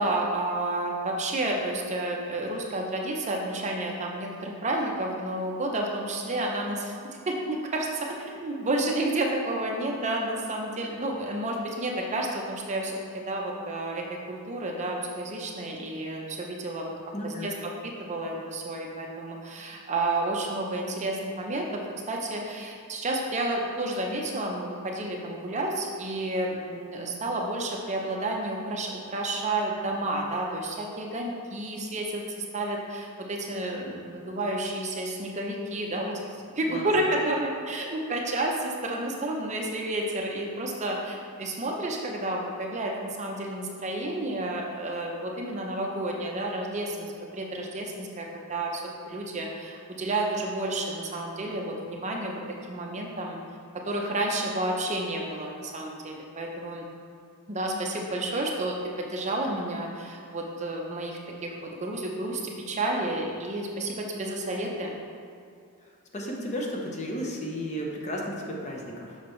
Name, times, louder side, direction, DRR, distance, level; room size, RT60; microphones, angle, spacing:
voice 1, 0.0-16.9 17.2-36.2 36.6-53.4 53.9-56.9 57.5-61.5 61.8-64.9, right 1 dB, 35° right, 0 dB, 0.7 m, -31 dB
voice 2, 17.1-17.5 36.7-36.9 66.1-69.2, equal, 35° left, -1 dB, 0.8 m, -33 dB
6.5 x 5.9 x 3.1 m, 2.4 s
head